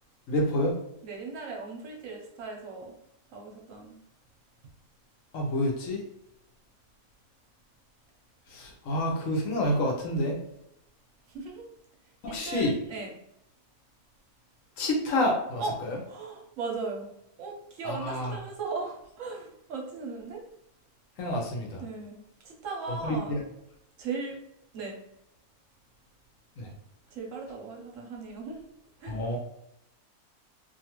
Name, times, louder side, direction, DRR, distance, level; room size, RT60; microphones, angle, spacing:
voice 1, 0.3-0.8 5.3-6.0 8.5-10.4 12.2-12.8 14.8-16.0 17.8-18.4 21.2-21.8 23.0-23.4 26.6-26.7 29.1-29.4, left 1 dB, 70° left, 0 dB, 1.0 m, -28 dB
voice 2, 1.0-2.9 3.3-4.0 11.3-11.7 12.3-13.1 15.6-15.7 16.1-17.1 17.4-20.4 21.8-23.4 24.0-24.4 24.7-25.0 27.1-28.6 29.0-29.2, right 4 dB, 65° right, 0 dB, 0.9 m, -37 dB
2.6 x 2.4 x 2.9 m, 0.78 s
omnidirectional pair, 1.5 m